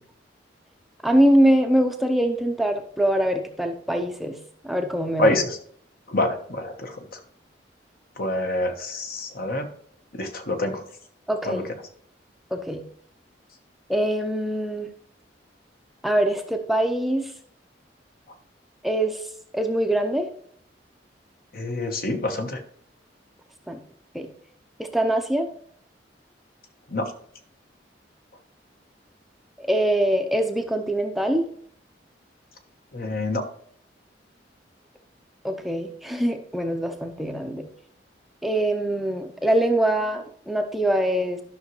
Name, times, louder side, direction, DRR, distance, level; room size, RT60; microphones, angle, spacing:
voice 1, 1.0-4.4 4.6-5.4 11.3-11.7 12.5-12.8 13.9-14.9 16.0-17.3 18.8-19.2 19.5-20.3 23.7-23.8 24.1-24.3 24.8-25.5 29.6-31.4 35.4-37.7 38.4-41.4, right 1 dB, ahead, 4 dB, 0.6 m, -23 dB
voice 2, 5.2-5.5 6.1-6.9 8.2-9.7 10.2-10.8 11.5-11.6 21.5-22.6 26.9-27.0 32.9-33.4, left 1 dB, 55° left, 5 dB, 1.2 m, -26 dB
12.0 x 6.1 x 3.2 m, 0.62 s
head